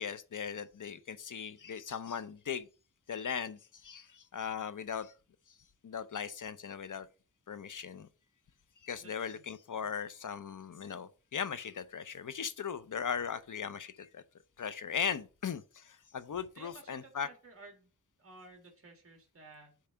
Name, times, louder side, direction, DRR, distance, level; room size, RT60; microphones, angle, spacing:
voice 1, 0.0-2.7 3.1-5.1 5.8-7.1 7.5-8.1 8.8-14.2 14.6-17.3, left 7 dB, 60° left, 0.7 m, -38 dB
voice 2, 9.0-9.4 16.5-17.9 18.2-19.8, right 3 dB, 40° right, 1.6 m, -55 dB
8.6 x 3.3 x 4.5 m
wide cardioid pair, 85°, 35 cm